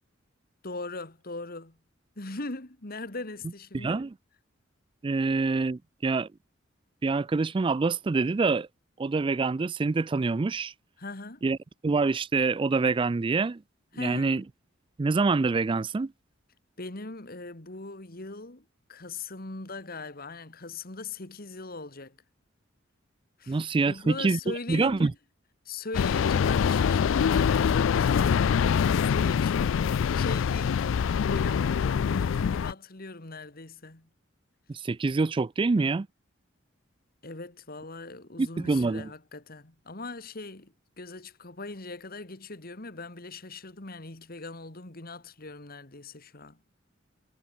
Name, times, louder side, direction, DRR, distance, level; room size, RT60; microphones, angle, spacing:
voice 1, 0.6-1.8 2.2-4.0 5.1-5.2 11.0-11.4 13.9-14.4 16.8-22.2 23.4-25.1 25.7-34.1 37.2-46.6, left 3 dB, 50° left, 2.2 m, -40 dB
voice 2, 3.7-4.1 5.0-6.3 7.0-8.7 9.0-10.7 11.4-11.6 11.8-13.6 14.0-14.4 15.0-16.1 23.5-25.1 34.7-36.1 38.4-39.1, right 3 dB, 25° right, 0.3 m, -26 dB
sound 1, 25.9-32.7, left 7 dB, 70° left, 0.3 m, -24 dB
head